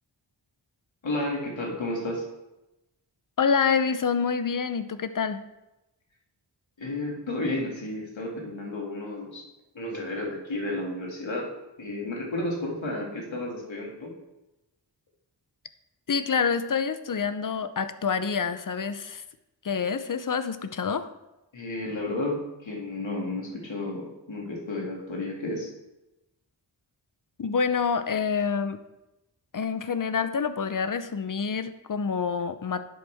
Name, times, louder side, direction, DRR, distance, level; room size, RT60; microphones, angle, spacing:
voice 1, 1.0-2.3 6.8-9.4 9.7-11.5 11.8-14.1 21.5-25.7, left 2 dB, 85° left, -2 dB, 2.4 m, -32 dB
voice 2, 3.4-5.4 16.1-19.2 19.6-21.1 27.4-28.8 29.5-32.9, left 6 dB, 45° left, 11 dB, 0.6 m, -27 dB
11.0 x 7.9 x 3.5 m, 0.97 s
wide cardioid pair, 95°, 44 cm